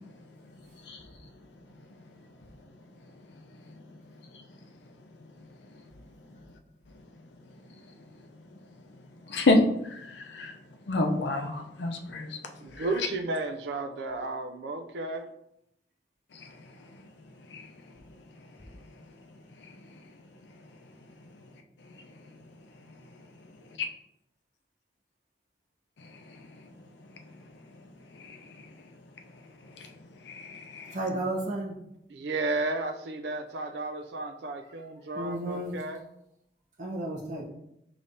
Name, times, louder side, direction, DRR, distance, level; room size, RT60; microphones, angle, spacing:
voice 1, 0.0-6.5 6.9-13.1 16.3-23.8 26.0-31.1, left 2 dB, 85° left, 0.6 m, -36 dB
voice 2, 12.6-15.3 32.1-36.0, right 2 dB, 75° right, 0.4 m, -33 dB
voice 3, 30.9-31.8 35.2-35.8 36.8-37.5, right 1 dB, 45° right, 1.0 m, -32 dB
5.0 x 3.2 x 2.7 m
head